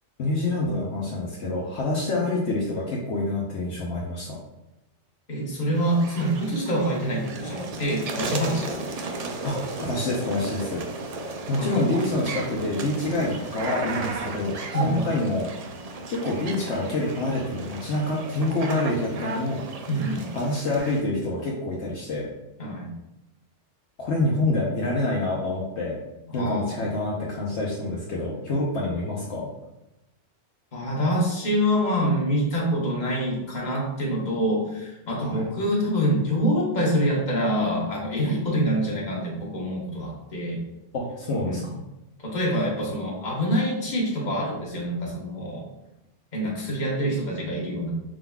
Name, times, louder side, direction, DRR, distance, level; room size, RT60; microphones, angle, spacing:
voice 1, 0.2-4.4 9.4-10.8 11.5-14.5 14.8-15.5 16.1-19.7 20.3-22.3 24.0-26.0 26.3-29.5 35.2-35.5 40.9-41.8, left 2 dB, 65° left, -4 dB, 1.0 m, -27 dB
voice 2, 5.3-8.9 11.6-11.9 14.7-15.1 19.9-20.3 22.6-22.9 24.2-24.3 26.3-26.7 30.7-40.6 41.4-41.6 42.2-45.6 46.3-47.9, equal, 40° left, -4 dB, 1.2 m, -26 dB
sound 1, 5.7-21.0, right 3 dB, 90° right, 0.3 m, -35 dB
4.8 x 3.8 x 2.3 m, 0.91 s
omnidirectional pair, 1.3 m